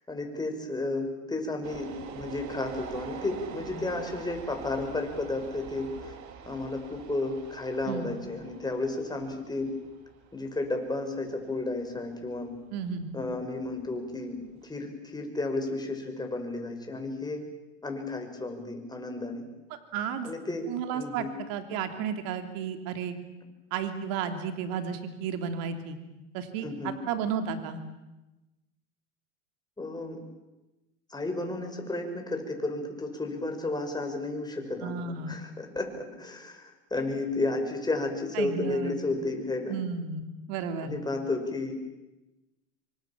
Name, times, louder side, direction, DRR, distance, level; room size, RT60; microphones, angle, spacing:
voice 1, 0.1-6.1 6.5-9.7 10.3-12.5 13.1-14.4 14.6-17.4 17.8-19.5 20.2-20.7 20.9-21.3 26.6-26.9 29.8-30.2 31.1-39.8 40.8-41.7, left 2 dB, 10° left, 3 dB, 5.8 m, -32 dB
sound 1, 1.6-14.7, right 7 dB, 50° right, 3.3 m, -45 dB
voice 2, 12.7-13.1 19.9-20.3 20.7-23.1 23.7-26.0 26.3-27.8 34.8-35.4 38.3-38.9 39.7-40.2 40.5-40.9, right 7 dB, 65° right, 7 dB, 3.1 m, -33 dB
26.0 x 24.5 x 7.3 m, 1.0 s
supercardioid pair, 110°, 36 cm